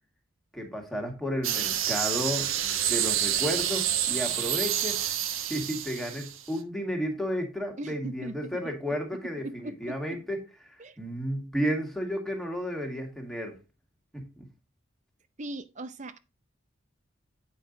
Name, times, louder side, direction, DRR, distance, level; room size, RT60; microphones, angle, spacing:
voice 1, 0.5-2.5 2.9-5.1 5.5-10.4 11.0-13.6 14.1-14.5, equal, ahead, 1.8 m, -32 dB
sound 1, 1.4-6.6, right 10 dB, 85° right, 1.1 m, -28 dB
voice 2, 7.8-8.7 9.4-10.2 10.8-11.0 15.4-16.2, right 1 dB, 35° right, 0.6 m, -39 dB
9.1 x 5.6 x 3.9 m
head